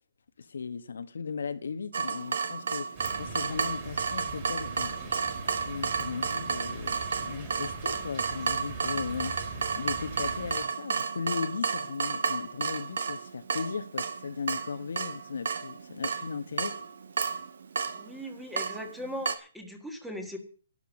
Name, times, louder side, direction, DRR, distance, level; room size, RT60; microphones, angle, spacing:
voice 1, 0.4-9.4 9.8-16.9, left 5 dB, 85° left, 1.4 m, -37 dB
Water tap faucet / Drip, 1.9-19.4, right 6 dB, 65° right, 1.5 m, -32 dB
sound 1, 3.0-10.6, right 3 dB, 20° right, 3.7 m, -42 dB
voice 2, 18.0-20.4, equal, ahead, 1.6 m, -39 dB
11.5 x 11.5 x 6.4 m
hypercardioid pair, 175°, 0 cm